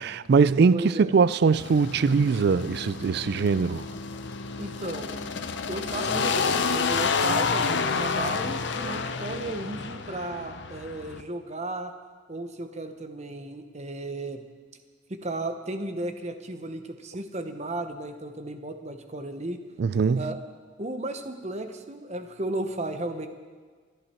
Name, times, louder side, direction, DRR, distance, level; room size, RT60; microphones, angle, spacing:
voice 1, 0.0-3.9 19.8-20.3, right 5 dB, 50° right, 0.3 m, -22 dB
voice 2, 0.7-1.2 4.6-5.2 5.7-11.9 12.3-14.4 15.1-19.6 20.2-20.4 20.8-23.3, right 2 dB, 35° right, 0.9 m, -34 dB
sound 1, 1.5-11.2, left 5 dB, 60° left, 0.7 m, -29 dB
25.0 x 10.5 x 4.4 m
head